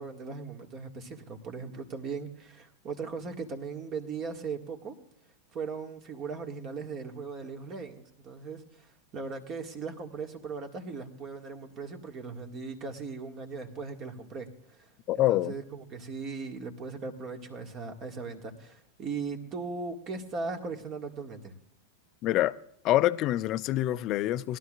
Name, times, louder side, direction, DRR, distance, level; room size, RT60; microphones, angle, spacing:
voice 1, 0.0-5.0 5.5-14.9 15.1-21.5, right 4 dB, 35° right, 2.0 m, -38 dB
voice 2, 15.1-15.5 22.2-22.5 22.8-24.6, left 14 dB, 40° left, 0.5 m, -26 dB
21.0 x 12.0 x 2.5 m
figure-of-eight pair, 90°, 0 cm